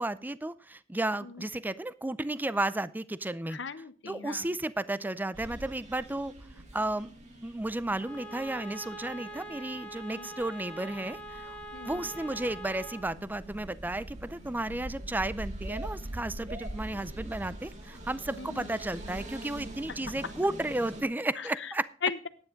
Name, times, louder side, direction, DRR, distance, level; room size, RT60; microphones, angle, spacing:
voice 1, 0.0-3.6 4.1-6.3 6.7-7.1 7.4-11.5 11.8-21.9, right 2 dB, 10° right, 16 dB, 0.5 m, -33 dB
voice 2, 3.5-4.5 10.2-10.3 11.7-12.1 16.9-17.0 18.4-18.7 21.4-21.7 22.0-22.3, left 5 dB, 70° left, 12 dB, 1.0 m, -37 dB
sound 1, 5.3-21.0, right 1 dB, 40° right, 2.2 m, -44 dB
Bowed string instrument, 7.9-13.1, right 1 dB, 5° left, 1.8 m, -44 dB
10.5 x 9.7 x 5.1 m, 0.40 s
head